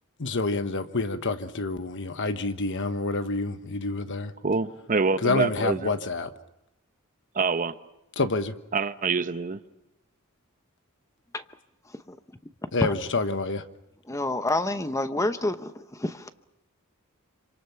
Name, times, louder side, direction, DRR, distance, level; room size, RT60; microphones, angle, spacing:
voice 1, 0.2-4.3 5.2-6.3 8.2-8.5 12.7-13.6, left 3 dB, 60° left, 1.2 m, -28 dB
voice 2, 4.4-5.8 7.3-7.7 8.7-9.6, right 4 dB, 40° right, 0.9 m, -25 dB
voice 3, 14.1-16.3, left 2 dB, 15° left, 0.8 m, -28 dB
27.0 x 26.0 x 5.8 m
head